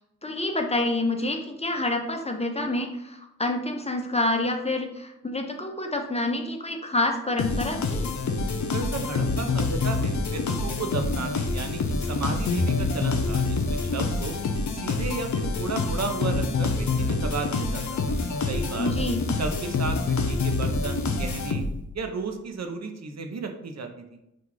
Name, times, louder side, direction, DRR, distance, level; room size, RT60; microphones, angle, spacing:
voice 1, 0.2-8.1 18.8-19.2, left 2 dB, 20° left, 3 dB, 0.5 m, -28 dB
sound 1, 7.4-22.0, left 3 dB, 70° left, 0.5 m, -27 dB
voice 2, 8.7-14.4 14.7-18.9 19.4-21.6 21.9-24.2, right 4 dB, 60° right, 5 dB, 0.5 m, -34 dB
3.0 x 2.4 x 3.8 m, 0.84 s
cardioid pair, 55°, 30 cm